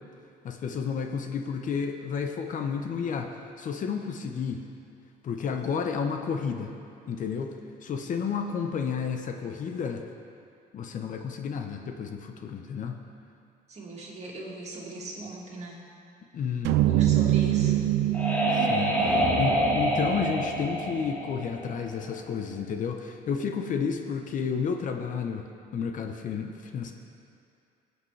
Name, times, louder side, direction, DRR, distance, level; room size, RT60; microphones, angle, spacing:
voice 1, 0.4-4.6 5.2-6.7 7.1-10.0 10.7-13.0 16.3-17.1 18.5-25.5 25.7-26.9, left 6 dB, 50° left, 5 dB, 0.8 m, -31 dB
voice 2, 13.7-15.8 16.7-17.8, right 2 dB, 40° right, -3 dB, 2.3 m, -39 dB
sound 1, 16.6-21.0, right 14 dB, 85° right, 0.4 m, -26 dB
sound 2, 17.6-22.2, equal, 10° left, 2.5 m, -27 dB
17.5 x 8.1 x 3.3 m, 2.5 s
cardioid pair, 110°, 17 cm